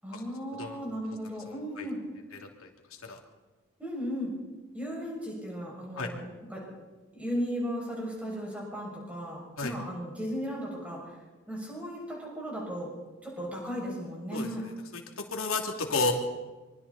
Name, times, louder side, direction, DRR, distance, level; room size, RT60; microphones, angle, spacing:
voice 1, 0.0-2.0 3.8-4.3 4.7-6.2 6.5-6.6 7.1-11.0 11.5-12.9 13.2-14.6, equal, 5° right, -3 dB, 6.8 m, -36 dB
voice 2, 1.5-1.9 2.3-2.7 3.0-3.2 5.9-6.1 9.6-9.8 14.3-15.0 15.3-16.1, left 3 dB, 80° left, 2 dB, 2.8 m, -32 dB
26.0 x 23.5 x 4.3 m, 1.2 s
head